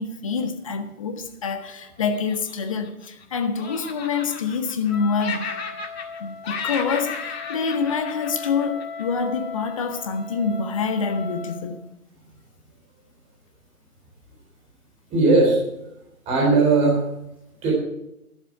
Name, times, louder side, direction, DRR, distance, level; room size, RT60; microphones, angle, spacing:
voice 1, 0.0-5.5 6.2-11.8, left 5 dB, 20° left, 0.7 m, -26 dB
Laughter, 2.0-3.2 3.5-4.9 5.2-6.2 6.4-9.0, left 5 dB, 45° left, 2.0 m, -34 dB
Wind instrument woodwind instrument, 4.9-11.7, left 5 dB, 60° left, 3.7 m, -37 dB
voice 2, 15.1-15.6 16.3-17.0 17.6-17.7, right 3 dB, 15° right, 4.0 m, -17 dB
12.5 x 12.0 x 4.8 m
figure-of-eight pair, 145°, 45 cm